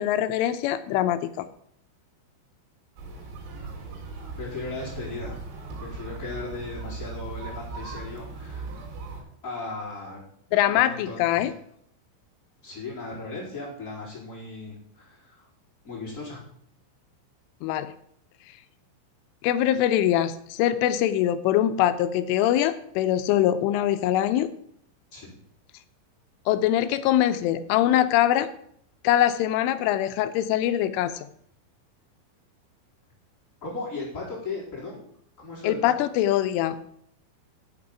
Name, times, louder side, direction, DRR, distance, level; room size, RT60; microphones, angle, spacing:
voice 1, 0.0-1.5 10.5-11.5 17.6-17.9 19.4-24.5 26.5-28.5 29.0-31.1 35.6-36.8, left 12 dB, 85° left, 12 dB, 3.0 m, -23 dB
sound 1, 3.0-9.2, right 3 dB, 90° right, 5.6 m, -38 dB
voice 2, 4.4-5.4 5.8-8.7 9.4-10.2 10.7-11.5 12.6-15.5 15.8-16.4 25.1-25.4 33.6-35.0 35.4-36.0, left 3 dB, 15° left, -5 dB, 4.5 m, -37 dB
8.8 x 8.4 x 7.2 m, 0.67 s
omnidirectional pair, 5.8 m